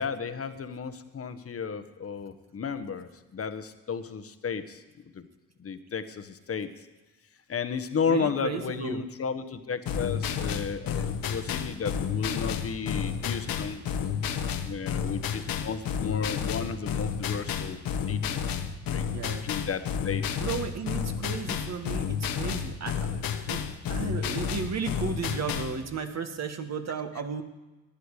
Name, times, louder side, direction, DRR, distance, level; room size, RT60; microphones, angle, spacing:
voice 1, 0.0-4.8 5.1-5.3 5.6-6.7 7.5-13.8 14.7-17.8 18.1-18.4 18.9-19.1 19.4-20.2, left 6 dB, 35° left, 10 dB, 1.3 m, -33 dB
voice 2, 8.1-9.0 11.0-11.1 19.1-19.5 20.4-23.2 23.5-23.6 23.9-27.4, right 6 dB, 45° right, 7 dB, 1.7 m, -34 dB
sound 1, 9.9-25.8, left 7 dB, 60° left, 1.3 m, -31 dB
19.0 x 11.0 x 4.9 m, 1.1 s
hypercardioid pair, 60°, 38 cm